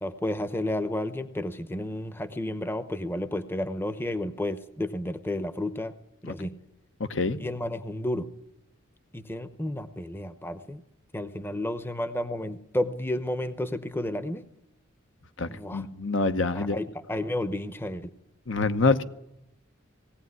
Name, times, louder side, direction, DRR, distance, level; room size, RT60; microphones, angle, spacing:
voice 1, 0.0-5.9 6.2-6.5 7.4-8.3 9.1-10.8 11.1-14.4 15.5-15.8 16.5-18.1, left 1 dB, 10° left, 12 dB, 0.8 m, -31 dB
voice 2, 15.4-16.8 18.5-19.0, left 3 dB, 65° left, 11 dB, 1.0 m, -26 dB
18.5 x 17.0 x 9.6 m, 0.83 s
head